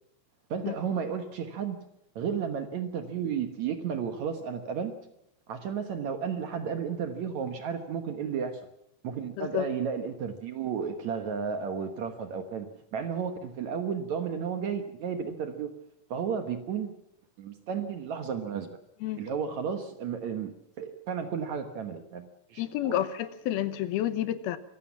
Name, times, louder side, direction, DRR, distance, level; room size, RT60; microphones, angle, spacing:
voice 1, 0.5-1.8 2.2-5.0 5.5-8.6 9.0-12.7 12.9-15.7 16.1-16.9 17.4-18.7 19.2-20.5 20.8-23.0, right 7 dB, 60° right, 7 dB, 2.1 m, -33 dB
voice 2, 22.6-24.6, left 12 dB, 75° left, 13 dB, 2.9 m, -30 dB
24.5 x 15.5 x 7.3 m, 0.79 s
omnidirectional pair, 4.5 m